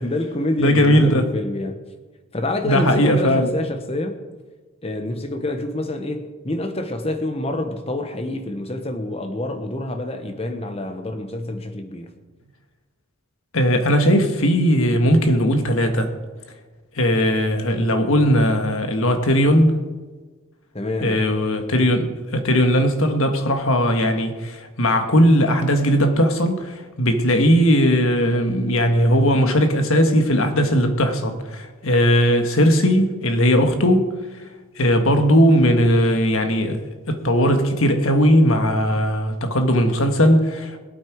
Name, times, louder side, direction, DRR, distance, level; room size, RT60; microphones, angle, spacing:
voice 1, 0.0-1.8 2.3-4.2 4.8-12.1 20.7-21.2, left 1 dB, 25° left, 1.1 m, -27 dB
voice 2, 0.6-1.2 2.6-3.5 13.5-16.1 17.0-19.8 21.0-34.1 34.8-40.8, equal, 75° left, 1.6 m, -18 dB
21.5 x 8.6 x 4.7 m
head